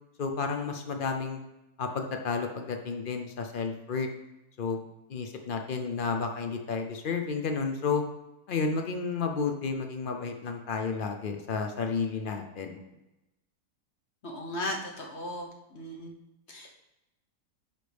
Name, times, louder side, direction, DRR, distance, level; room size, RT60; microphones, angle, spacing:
voice 1, 0.2-1.4 1.8-4.1 4.6-4.8 5.1-8.0 8.5-12.8, left 5 dB, 80° left, 4 dB, 0.4 m, -31 dB
voice 2, 14.2-16.1 16.5-16.7, left 1 dB, 45° left, 0 dB, 1.2 m, -37 dB
10.0 x 5.1 x 3.4 m, 0.95 s
omnidirectional pair, 1.8 m